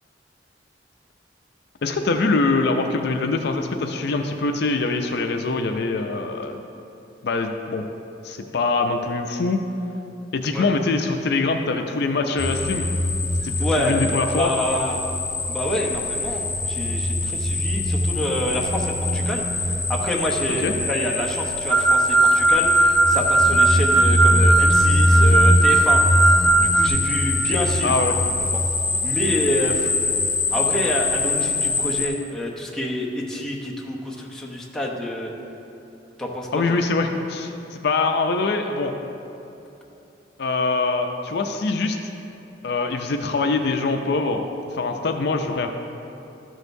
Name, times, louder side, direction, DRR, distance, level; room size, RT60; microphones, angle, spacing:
voice 1, 1.8-6.6 7.2-7.9 8.2-9.6 10.3-12.9 13.4-14.5 20.6-20.7 27.8-28.2 36.5-39.0 40.4-42.0 42.6-44.5 44.8-45.7, left 3 dB, 65° left, 4 dB, 0.5 m, -23 dB
sound 1, 12.4-32.1, left 2 dB, 45° left, 1.7 m, -23 dB
voice 2, 13.6-14.0 14.4-15.0 15.5-26.2 26.6-28.0 28.5-28.6 29.0-29.9 30.5-35.3 36.2-36.8, left 1 dB, 5° left, -3 dB, 0.8 m, -27 dB
sound 2, 21.7-26.9, right 3 dB, 70° right, 0.7 m, -18 dB
13.0 x 6.4 x 2.6 m, 2.8 s
head